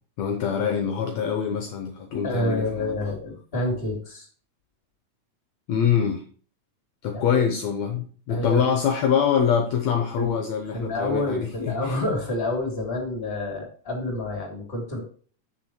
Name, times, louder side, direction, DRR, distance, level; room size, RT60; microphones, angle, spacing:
voice 1, 0.2-3.0 5.7-6.2 7.0-12.0, left 7 dB, 70° left, 2.0 m, -24 dB
voice 2, 2.2-4.3 7.1-7.4 8.3-8.6 10.2-10.3 10.7-15.0, left 1 dB, 20° left, 2.8 m, -28 dB
7.6 x 6.8 x 4.5 m
omnidirectional pair, 3.7 m